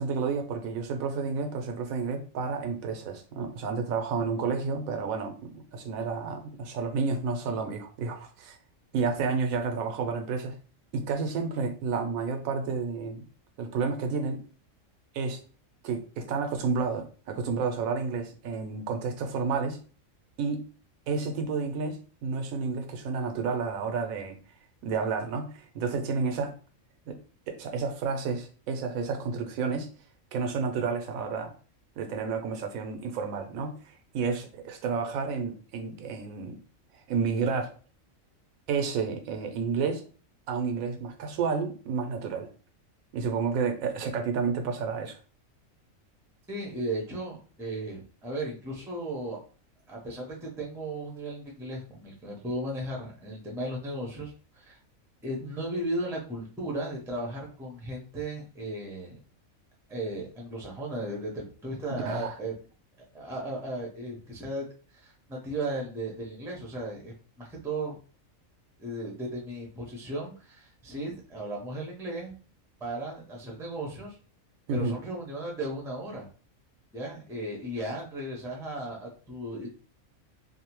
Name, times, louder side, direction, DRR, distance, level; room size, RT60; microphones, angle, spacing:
voice 1, 0.0-8.6 8.9-10.6 10.9-13.2 13.6-14.4 15.1-15.4 15.8-19.8 20.4-20.7 21.1-24.4 24.8-26.5 27.1-27.2 27.5-29.9 30.3-31.5 32.0-36.6 37.1-37.7 38.7-40.0 40.5-42.5 43.1-45.2 62.0-62.4 74.7-75.0, right 5 dB, 85° right, 5 dB, 1.0 m, -30 dB
voice 2, 46.5-49.4 49.9-54.8 55.2-59.2 59.9-62.5 63.0-64.6 64.9-68.0 68.8-72.3 72.8-74.2 74.7-76.3 76.9-79.7, right 1 dB, 5° right, -1 dB, 0.4 m, -35 dB
2.7 x 2.0 x 2.9 m, 0.38 s
omnidirectional pair, 1.4 m